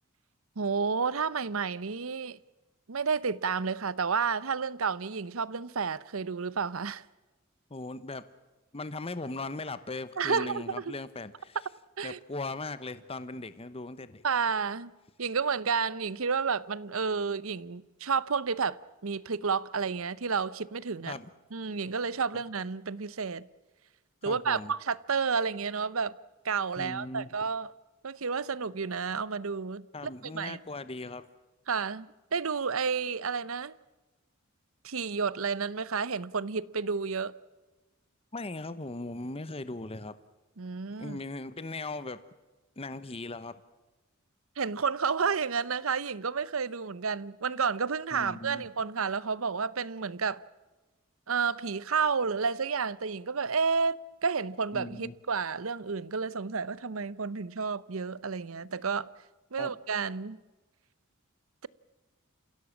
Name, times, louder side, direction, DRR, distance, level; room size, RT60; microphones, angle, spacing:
voice 1, 0.6-2.4 2.9-7.0 10.2-10.9 12.0-12.2 14.2-14.9 15.2-21.1 21.5-23.5 24.2-26.2 26.4-27.7 28.0-29.9 30.2-30.6 31.7-33.7 34.8-37.3 40.6-41.2 44.6-50.4 51.3-59.1 59.5-60.4, right 5 dB, 70° right, 0.8 m, -31 dB
voice 2, 7.7-8.2 8.7-11.6 12.0-14.2 21.1-21.3 24.2-24.7 26.8-27.3 29.9-31.2 38.3-40.1 41.0-42.2 42.8-43.6 48.1-48.6 54.7-55.1 59.6-59.7, left 2 dB, 25° left, 0.9 m, -38 dB
29.5 x 16.5 x 7.3 m
head